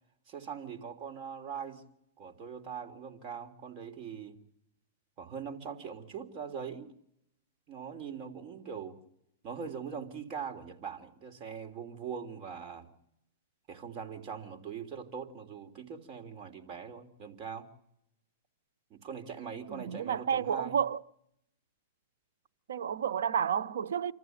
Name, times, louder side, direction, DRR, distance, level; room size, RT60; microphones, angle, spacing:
voice 1, 0.3-1.9 2.2-4.3 5.2-6.9 7.7-9.0 9.4-12.9 13.7-17.7 18.9-20.8, right 7 dB, 35° right, 3.3 m, -41 dB
voice 2, 19.7-21.0 22.7-24.1, right 8 dB, 80° right, 0.9 m, -31 dB
27.5 x 14.5 x 9.4 m
hypercardioid pair, 140°, 0 cm